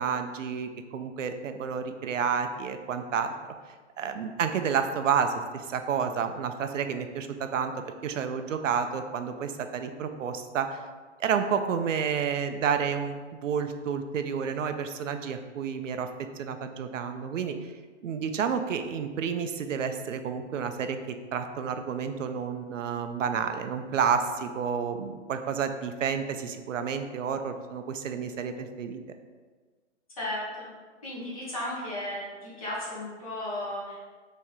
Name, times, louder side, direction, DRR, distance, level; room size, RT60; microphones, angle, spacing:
voice 1, 0.0-3.3 4.0-7.7 8.0-10.8 11.2-16.1 16.4-17.7 18.0-29.0, right 7 dB, 90° right, 7 dB, 0.6 m, -30 dB
voice 2, 30.2-30.7 31.0-34.0, left 1 dB, 30° left, -7 dB, 1.1 m, -35 dB
4.3 x 3.0 x 3.6 m, 1.4 s
hypercardioid pair, 175°, 37 cm